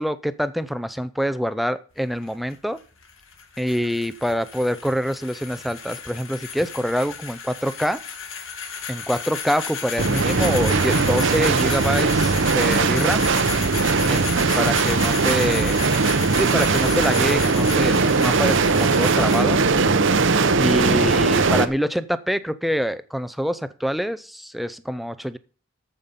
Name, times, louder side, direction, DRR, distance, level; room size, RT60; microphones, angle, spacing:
voice 1, 0.0-2.8 3.6-8.0 8.9-13.3 14.1-14.3 14.5-15.8 16.3-19.6 20.5-25.4, equal, ahead, 13 dB, 0.4 m, -25 dB
sound 1, 1.9-19.4, left 6 dB, 60° left, 2.0 m, -33 dB
sound 2, 10.0-21.7, right 4 dB, 55° right, 0.7 m, -19 dB
14.0 x 5.7 x 5.2 m, 0.39 s
head